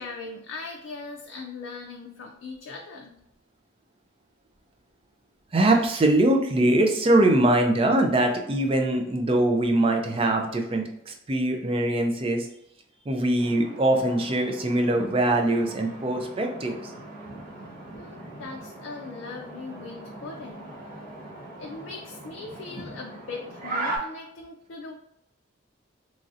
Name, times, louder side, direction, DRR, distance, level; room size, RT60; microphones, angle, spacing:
voice 1, 0.0-3.1 17.9-21.0 21.6-24.9, left 4 dB, 75° left, 1 dB, 0.4 m, -40 dB
voice 2, 5.5-12.5 13.1-16.9, right 1 dB, 30° right, 3 dB, 0.3 m, -22 dB
sound 1, 13.4-24.0, right 2 dB, 45° right, 1.0 m, -39 dB
3.0 x 2.4 x 2.6 m, 0.76 s
head